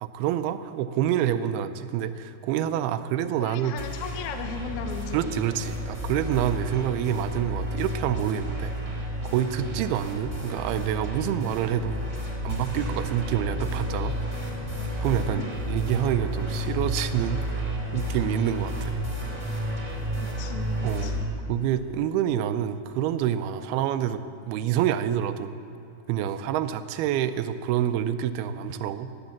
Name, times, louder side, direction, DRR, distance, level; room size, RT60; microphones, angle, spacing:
voice 1, 0.0-3.7 5.1-8.7 9.2-12.0 12.4-14.2 15.0-17.7 17.9-19.0 20.8-21.1 21.5-24.2 24.5-25.5 26.1-29.1, right 10 dB, 80° right, 11 dB, 2.4 m, -27 dB
voice 2, 3.4-5.2 15.3-15.5 20.2-21.3, left 6 dB, 70° left, 5 dB, 1.8 m, -37 dB
sound 1, 3.8-21.2, equal, 10° left, 1.7 m, -31 dB
17.0 x 10.5 x 7.3 m, 2.7 s
omnidirectional pair, 4.8 m